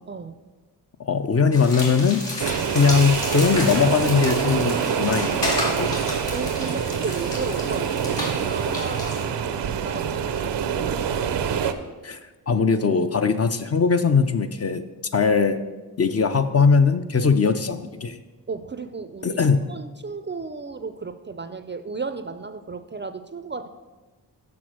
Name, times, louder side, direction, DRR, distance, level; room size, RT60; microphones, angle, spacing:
voice 1, 0.1-0.4 2.4-2.7 6.3-11.3 18.5-23.7, right 4 dB, 30° right, 10 dB, 0.4 m, -34 dB
voice 2, 1.0-6.0 12.0-12.2 12.5-14.8 15.1-15.6 16.0-18.2 19.2-19.6, left 5 dB, 35° left, 9 dB, 0.5 m, -20 dB
sound 1, 1.5-9.2, left 2 dB, 80° left, 2.8 m, -32 dB
sound 2, 2.4-11.7, right 7 dB, 80° right, 0.6 m, -26 dB
6.1 x 6.0 x 6.2 m, 1.2 s
cardioid pair, 60°, 42 cm